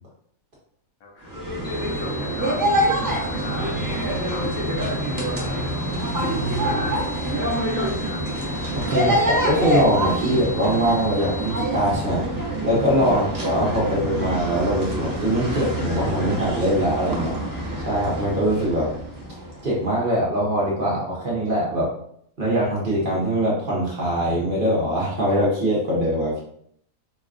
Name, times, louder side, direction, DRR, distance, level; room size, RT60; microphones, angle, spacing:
voice 1, 1.0-2.6 3.0-3.9 4.2-4.8 5.4-5.7 6.3-8.2 13.1-13.2, left 2 dB, 80° left, 1 dB, 1.2 m, -39 dB
sound 1, 1.2-19.7, right 1 dB, 30° right, 0.4 m, -26 dB
sound 2, 1.6-11.6, left 1 dB, 45° left, 0.9 m, -38 dB
voice 2, 8.7-12.2 12.6-17.4 17.8-18.9 19.6-21.9 22.4-26.4, equal, 45° right, -5 dB, 0.8 m, -22 dB
4.1 x 2.2 x 2.4 m, 0.66 s
omnidirectional pair, 1.5 m